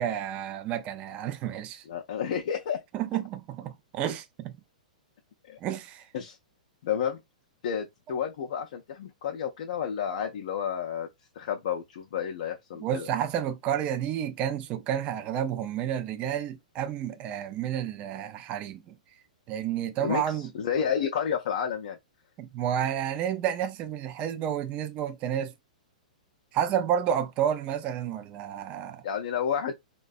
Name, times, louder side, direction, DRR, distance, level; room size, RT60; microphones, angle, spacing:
voice 1, 0.0-1.8 2.9-4.6 5.6-6.0 12.8-19.0 19.5-20.5 22.4-25.5 26.5-29.0, right 9 dB, 30° right, 0.3 m, -30 dB
voice 2, 1.9-2.8 5.5-5.6 6.1-6.4 6.8-7.2 7.6-11.1 11.4-13.1 20.0-20.2 20.5-22.0 29.0-29.7, left 8 dB, 60° left, 0.4 m, -30 dB
2.5 x 2.1 x 2.3 m
figure-of-eight pair, 110°, 4 cm